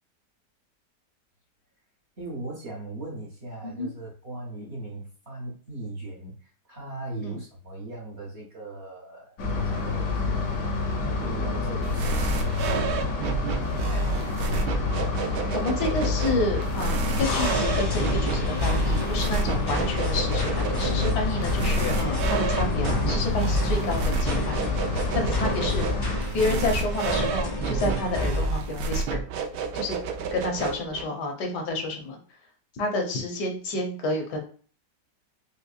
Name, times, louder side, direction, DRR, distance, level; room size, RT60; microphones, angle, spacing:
voice 1, 2.2-9.3 9.7-10.4 11.0-13.2 13.8-14.3 25.1-25.4, right 2 dB, 50° right, -3 dB, 0.9 m, -39 dB
sound 1, 9.4-26.2, left 4 dB, 65° left, 0.9 m, -28 dB
sound 2, 11.8-31.0, right 4 dB, 75° right, 1.0 m, -30 dB
voice 2, 15.5-24.8 25.1-25.9 26.3-29.2 29.7-30.0 30.3-32.2 32.8-34.4, left 2 dB, 80° left, 3 dB, 1.4 m, -29 dB
sound 3, 17.2-28.5, left 1 dB, 25° left, 0.4 m, -31 dB
5.2 x 2.1 x 2.3 m, 0.42 s
omnidirectional pair, 1.8 m